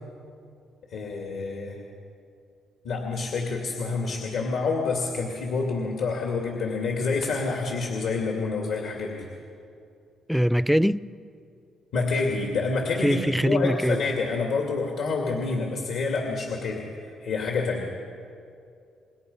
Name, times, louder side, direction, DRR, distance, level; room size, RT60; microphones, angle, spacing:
voice 1, 0.9-1.8 2.8-9.3 11.9-17.9, left 4 dB, 80° left, 2.5 m, -28 dB
voice 2, 10.3-11.1 13.0-14.0, equal, ahead, 0.5 m, -22 dB
26.5 x 21.0 x 5.6 m
cardioid pair, 90°, 0 cm